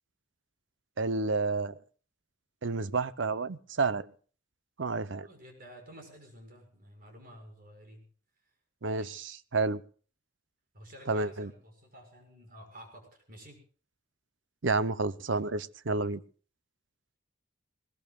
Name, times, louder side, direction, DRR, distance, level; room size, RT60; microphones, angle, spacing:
voice 1, 1.0-1.8 2.6-4.1 4.8-5.3 8.8-9.8 11.1-11.5 14.6-16.2, right 3 dB, 70° right, 15 dB, 0.8 m, -30 dB
voice 2, 5.2-8.1 9.0-9.2 10.7-13.6, equal, 50° right, 3 dB, 6.3 m, -51 dB
21.5 x 21.0 x 2.4 m, 0.41 s
head